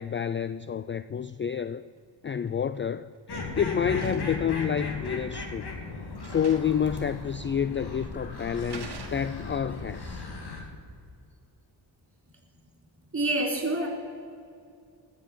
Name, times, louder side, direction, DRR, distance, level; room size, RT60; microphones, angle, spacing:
voice 1, 0.0-1.8 2.2-3.1 3.3-5.6 6.2-10.3, left 8 dB, 30° left, 14 dB, 0.4 m, -29 dB
sound 1, 2.5-2.8 3.1-4.5 5.4-5.5 5.9-6.0 6.2-6.9 7.1-7.2 8.0-8.2 8.7-9.6, right 5 dB, 55° right, 1.8 m, -46 dB
sound 2, 3.3-10.6, left 3 dB, 60° left, 2.9 m, -36 dB
voice 2, 13.1-13.9, right 2 dB, 30° right, 1 dB, 4.7 m, -26 dB
18.5 x 7.6 x 7.5 m, 2.3 s
cardioid pair, 80°, 45 cm